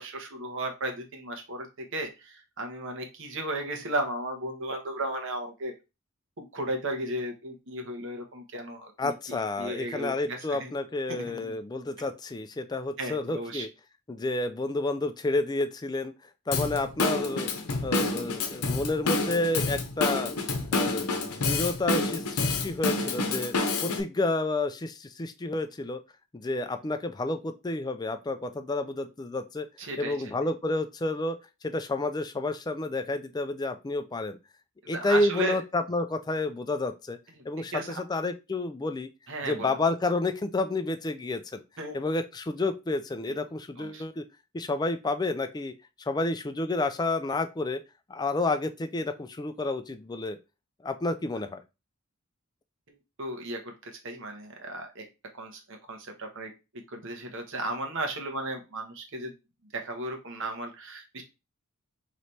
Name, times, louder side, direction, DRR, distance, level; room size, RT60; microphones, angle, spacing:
voice 1, 0.0-5.7 6.4-10.7 11.1-11.5 13.0-13.6 29.8-30.2 34.8-35.6 37.4-37.5 37.7-38.0 39.3-39.7 41.8-42.0 43.8-44.0 53.2-55.0 55.3-56.5 56.9-59.3 59.7-61.2, right 1 dB, 60° right, 4 dB, 1.1 m, -35 dB
voice 2, 9.0-13.7 14.1-16.1 16.5-17.5 17.8-20.3 20.7-23.5 23.8-26.0 26.3-29.7 30.0-34.4 34.9-37.2 37.4-39.1 39.4-41.6 41.9-44.2 44.5-47.8 48.1-50.4 50.8-51.6, left 2 dB, 20° left, 9 dB, 0.3 m, -30 dB
Drum kit / Drum, 16.5-24.0, left 3 dB, 85° left, 0.8 m, -28 dB
3.2 x 3.1 x 4.1 m, 0.27 s
head